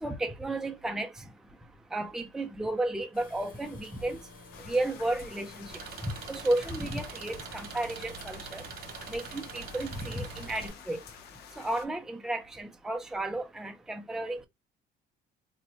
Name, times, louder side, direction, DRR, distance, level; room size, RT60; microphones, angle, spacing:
voice 1, 0.0-1.1 1.9-4.2 4.7-5.7 6.0-8.6 9.1-11.0 11.6-14.5, right 1 dB, 5° right, 0.5 m, -33 dB
sound 1, 3.1-10.7, left 3 dB, 55° left, 1.2 m, -50 dB
sound 2, 4.5-11.9, left 7 dB, 75° left, 0.8 m, -50 dB
Engine, 5.7-10.7, right 9 dB, 70° right, 0.7 m, -44 dB
4.1 x 2.1 x 2.9 m
cardioid pair, 110°, 17 cm